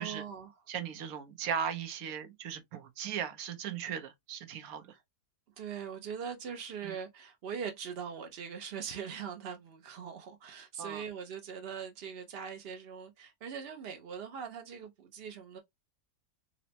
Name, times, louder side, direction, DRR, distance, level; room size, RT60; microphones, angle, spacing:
voice 1, 0.0-0.5 5.6-15.6, right 7 dB, 80° right, 0.5 m, -41 dB
voice 2, 0.7-5.0 6.8-6.9 10.8-11.0, right 8 dB, 65° right, 1.0 m, -37 dB
3.9 x 2.1 x 2.6 m
omnidirectional pair, 1.8 m